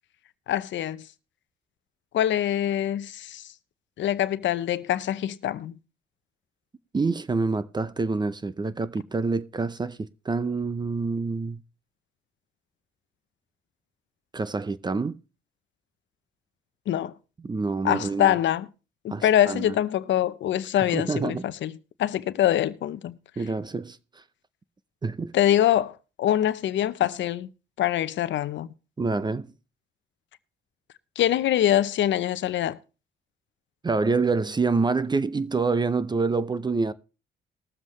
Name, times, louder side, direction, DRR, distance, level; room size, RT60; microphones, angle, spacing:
voice 1, 0.5-1.0 2.1-3.4 4.0-5.8 16.9-17.1 17.8-18.7 19.0-21.7 22.0-23.2 25.3-27.5 27.8-28.7 31.2-32.8, left 11 dB, 70° left, 0.7 m, -24 dB
voice 2, 6.9-11.6 14.3-15.2 17.4-18.4 19.1-19.7 20.9-21.4 23.4-24.0 25.0-25.3 29.0-29.5 33.8-36.9, right 4 dB, 20° right, 0.6 m, -27 dB
20.0 x 7.4 x 3.1 m
cardioid pair, 90°, 20 cm